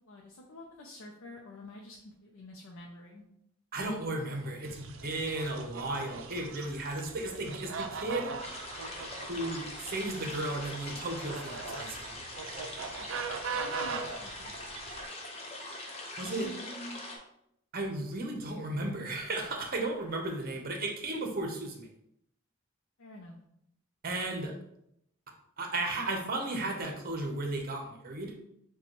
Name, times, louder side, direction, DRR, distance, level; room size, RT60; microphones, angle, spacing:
voice 1, 0.1-3.2 5.0-5.2 13.0-14.6 16.2-17.0 23.0-23.4, equal, 75° left, -1 dB, 0.6 m, -48 dB
voice 2, 3.7-8.3 9.3-12.0 16.2-16.5 17.7-21.9 24.0-24.5 25.6-28.3, right 2 dB, 45° right, 2 dB, 0.8 m, -34 dB
sound 1, 4.6-15.0, right 5 dB, 70° right, 0.5 m, -41 dB
sound 2, 8.4-17.2, left 2 dB, 30° left, 0.8 m, -42 dB
6.8 x 2.3 x 3.0 m, 0.77 s
head